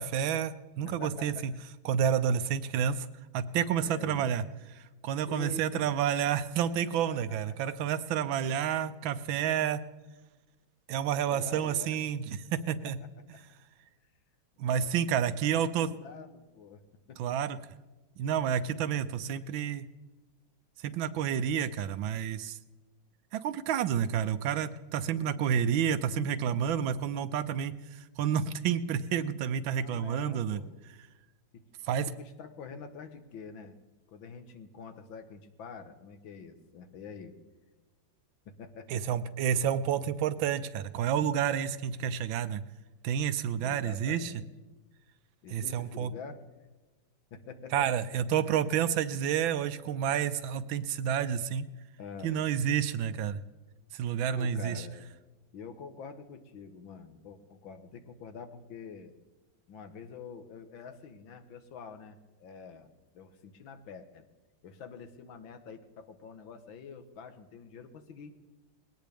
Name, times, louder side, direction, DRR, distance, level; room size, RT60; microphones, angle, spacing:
voice 1, 0.0-1.5 1.8-3.1 3.3-4.4 4.7-9.8 10.9-13.0 14.6-15.9 17.2-17.6 18.2-19.9 20.8-22.6 23.3-30.6 31.9-32.1 38.9-42.6 43.0-44.3 45.5-46.1 47.7-51.7 52.2-53.4 53.9-54.8, right 8 dB, 85° right, 13 dB, 1.5 m, -30 dB
voice 2, 0.9-1.6 3.8-4.3 5.2-5.8 7.1-7.4 8.5-8.8 11.3-12.0 12.8-12.9 13.3-13.4 14.6-14.9 15.3-16.8 17.1-17.4 29.6-30.8 31.5-33.8 34.1-37.3 38.5-39.2 43.6-44.5 45.4-46.4 47.3-47.9 52.0-52.4 54.3-55.1 55.5-59.1 59.7-64.3 64.6-68.3, left 5 dB, 85° left, 8 dB, 2.0 m, -46 dB
21.0 x 17.5 x 3.5 m, 1.2 s
omnidirectional pair, 2.1 m